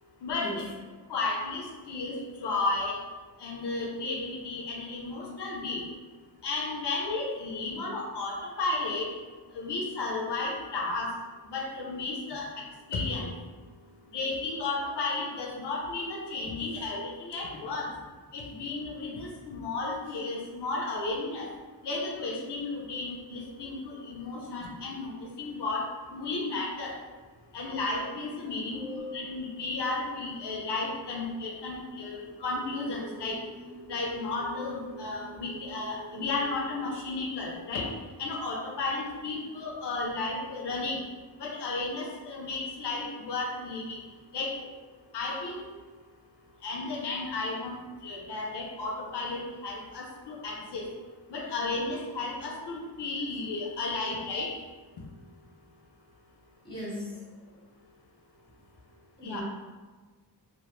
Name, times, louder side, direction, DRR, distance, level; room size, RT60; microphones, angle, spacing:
voice 1, 0.4-0.7 7.6-7.9 10.8-10.9 17.5-17.7 27.4-27.6 28.7-29.4 56.6-57.2 59.2-59.4, left 1 dB, 10° left, -7 dB, 0.8 m, -40 dB
voice 2, 1.1-3.0 3.4-5.8 6.4-9.1 9.5-11.1 11.5-12.5 12.9-13.3 14.1-17.9 18.3-21.5 21.8-26.9 27.5-33.4 33.9-37.9 38.2-41.0 41.4-44.0 44.3-44.5 45.1-45.6 46.6-50.9 51.3-54.5 59.2-59.4, left 3 dB, 75° left, -2 dB, 0.5 m, -33 dB
sound 1, 28.0-37.8, right 1 dB, 25° right, 0.5 m, -48 dB
2.2 x 2.1 x 2.9 m, 1.4 s
wide cardioid pair, 110°, 41 cm